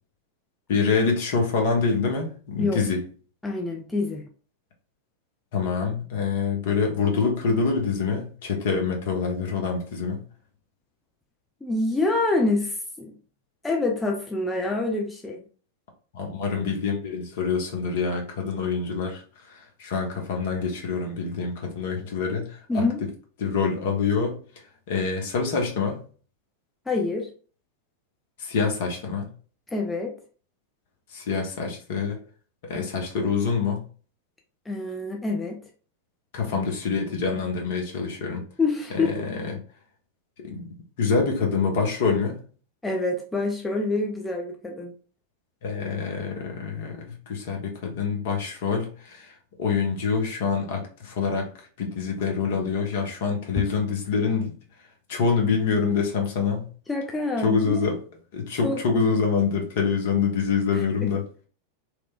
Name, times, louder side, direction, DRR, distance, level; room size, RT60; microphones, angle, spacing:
voice 1, 0.7-3.0 5.5-10.2 16.1-19.2 19.5-22.8 23.4-24.4 24.9-26.0 28.4-29.3 31.1-32.2 32.6-33.8 36.3-38.4 38.9-39.3 40.4-40.7 41.0-42.4 45.6-47.0 47.3-49.3 49.6-51.5 51.8-54.5 55.1-56.7 57.4-58.0 58.3-61.2, left 5 dB, 55° left, 2 dB, 0.7 m, -26 dB
voice 2, 3.4-4.3 11.6-13.2 13.6-15.4 22.7-23.0 26.9-27.3 29.7-30.2 34.7-35.6 38.6-39.2 42.8-44.9 53.6-53.7 56.9-57.8 58.6-58.8 60.7-61.1, left 3 dB, 10° left, 0 dB, 0.4 m, -26 dB
3.0 x 2.1 x 2.3 m, 0.40 s
figure-of-eight pair, 90°, 0 cm